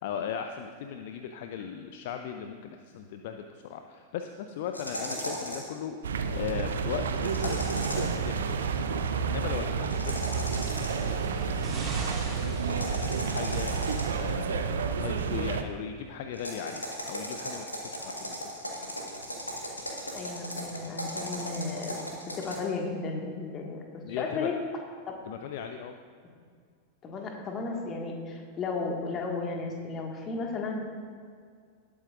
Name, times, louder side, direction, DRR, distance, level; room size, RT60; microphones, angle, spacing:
voice 1, 0.0-8.5 9.2-12.0 12.2-18.5 24.0-24.6 25.3-26.0, left 8 dB, 50° left, 6 dB, 0.5 m, -38 dB
sound 1, 4.7-5.8 7.2-8.2 9.9-11.1 12.7-14.3 16.3-22.5, equal, 85° left, 1.6 m, -37 dB
sound 2, 6.0-15.6, right 6 dB, 65° right, 0.6 m, -30 dB
sound 3, 10.4-13.6 14.5-14.6, right 2 dB, 15° right, 2.1 m, -41 dB
voice 2, 20.1-22.0 22.3-24.5 25.1-25.2 27.0-30.8, left 3 dB, 30° left, 1 dB, 1.8 m, -34 dB
18.5 x 8.6 x 2.5 m, 2.1 s
figure-of-eight pair, 90°, 0 cm